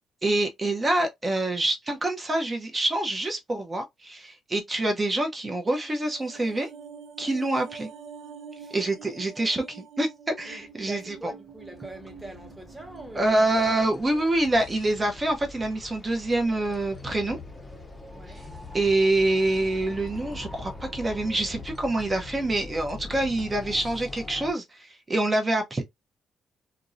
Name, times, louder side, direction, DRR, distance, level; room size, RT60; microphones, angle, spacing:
voice 1, 0.2-6.7 7.2-7.9 8.7-11.2 13.1-17.4 18.7-25.8, right 2 dB, 25° right, 0.6 m, -26 dB
sound 1, 5.7-14.1 14.4-14.6, right 6 dB, 75° right, 0.4 m, -46 dB
voice 2, 10.4-14.2 18.1-18.5, right 1 dB, 5° right, 1.0 m, -44 dB
sound 2, 10.6-24.5, left 2 dB, 20° left, 0.6 m, -43 dB
2.5 x 2.0 x 2.5 m
cardioid pair, 90°, 0 cm